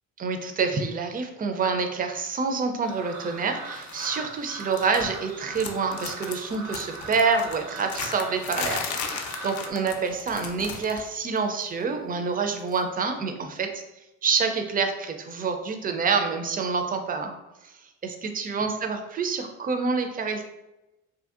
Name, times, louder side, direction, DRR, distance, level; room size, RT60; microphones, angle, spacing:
voice 1, 0.2-13.8 14.2-17.4 17.6-17.7 18.0-20.4, right 5 dB, 30° right, 6 dB, 0.4 m, -27 dB
sound 1, 2.8-9.7, right 4 dB, 80° right, 0.6 m, -40 dB
sound 2, 3.7-4.2 4.4-5.3 5.5-11.1 11.4-11.6 12.7-12.8, left 6 dB, 70° left, 0.5 m, -36 dB
2.7 x 2.6 x 2.4 m, 0.96 s
cardioid pair, 90°, 30 cm